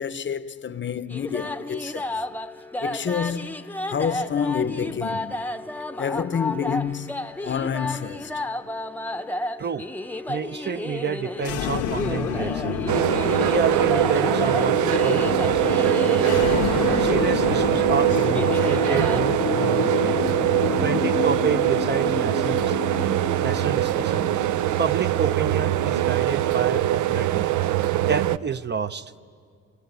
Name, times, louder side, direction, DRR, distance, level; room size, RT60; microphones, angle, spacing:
voice 1, 0.0-2.2 2.8-5.6 6.0-8.4 18.0-18.2, left 7 dB, 40° left, 0.8 m, -29 dB
sound 1, 1.1-19.2, left 1 dB, 5° left, 0.8 m, -32 dB
voice 2, 10.3-12.8 13.4-16.5 17.0-20.2 20.8-22.8 23.4-24.3 24.8-27.5 27.9-29.1, right 6 dB, 35° right, 0.7 m, -29 dB
sound 2, 11.4-27.4, left 10 dB, 80° left, 1.0 m, -29 dB
sound 3, 12.9-28.4, right 14 dB, 75° right, 0.6 m, -22 dB
28.0 x 24.0 x 8.2 m
cardioid pair, 90°, 30 cm